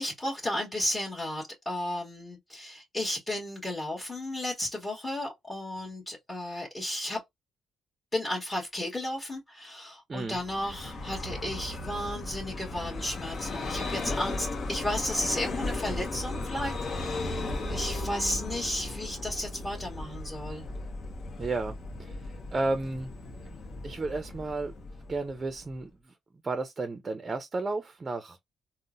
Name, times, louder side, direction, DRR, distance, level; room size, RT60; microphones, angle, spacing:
voice 1, 0.0-7.2 8.1-20.6, left 1 dB, 20° left, 1.3 m, -34 dB
voice 2, 10.1-10.4 21.4-23.1 23.8-26.1 26.4-28.4, right 3 dB, 35° right, 0.5 m, -33 dB
Vehicle, 10.3-25.8, left 2 dB, 55° left, 0.8 m, -36 dB
3.6 x 2.1 x 2.5 m
cardioid pair, 90°, 0 cm